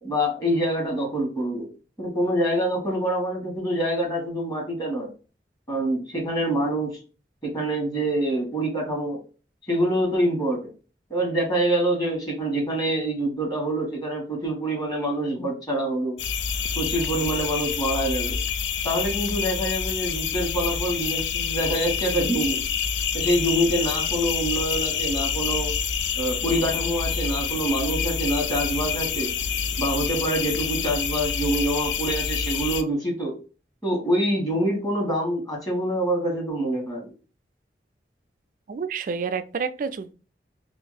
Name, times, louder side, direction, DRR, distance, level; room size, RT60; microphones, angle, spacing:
voice 1, 0.0-1.7 2.0-5.1 5.7-7.0 7.4-9.2 9.7-10.6 11.1-16.2 16.7-18.4 18.8-22.6 23.1-25.7 26.2-29.3 29.8-33.4 33.8-37.1, right 1 dB, 20° left, 1.3 m, -26 dB
sound 1, 16.2-32.8, left 7 dB, 85° left, 0.4 m, -27 dB
voice 2, 38.7-40.1, right 5 dB, 50° right, 0.3 m, -29 dB
2.9 x 2.6 x 3.9 m
head